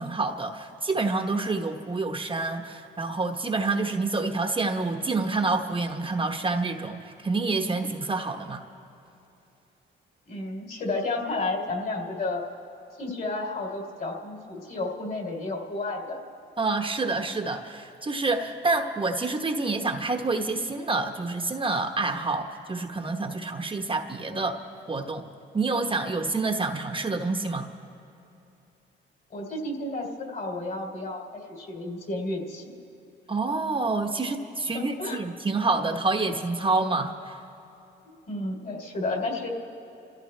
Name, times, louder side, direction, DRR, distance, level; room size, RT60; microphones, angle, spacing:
voice 1, 0.0-8.6 16.6-24.6 24.9-25.3 25.5-27.7 33.3-37.4, right 3 dB, 25° right, 3 dB, 1.1 m, -28 dB
voice 2, 10.3-12.4 13.0-16.2 29.3-31.2 31.5-32.8 34.7-35.2 38.0-39.5, left 2 dB, 45° left, 1 dB, 3.3 m, -32 dB
29.0 x 14.5 x 3.3 m, 2.9 s
cardioid pair, 90°, 20 cm